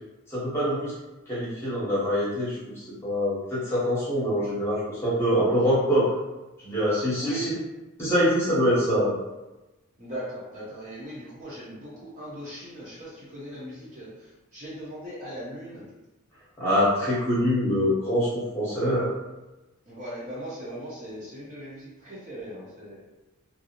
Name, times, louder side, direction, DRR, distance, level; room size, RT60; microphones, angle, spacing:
voice 1, 0.3-0.9 1.3-2.6 3.0-6.1 6.6-7.6 8.0-9.2 16.6-19.1, equal, 10° left, -9 dB, 0.9 m, -24 dB
voice 2, 7.1-7.6 10.0-15.9 19.9-23.0, right 1 dB, 35° right, -7 dB, 0.7 m, -39 dB
2.4 x 2.0 x 2.8 m, 1.0 s
head